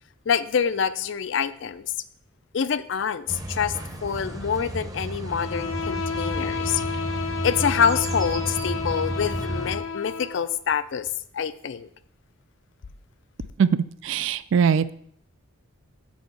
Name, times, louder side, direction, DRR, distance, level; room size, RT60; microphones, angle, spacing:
voice 1, 0.3-1.9 2.5-3.8 4.0-6.8 7.4-11.1 11.3-11.9, left 7 dB, 60° left, 14 dB, 0.4 m, -26 dB
sound 1, 3.3-9.8, right 1 dB, 15° right, 0.7 m, -32 dB
Bowed string instrument, 5.3-10.5, left 5 dB, 80° left, 0.7 m, -31 dB
voice 2, 13.6-14.9, right 6 dB, 65° right, 16 dB, 0.3 m, -21 dB
6.3 x 5.3 x 6.9 m, 0.67 s
head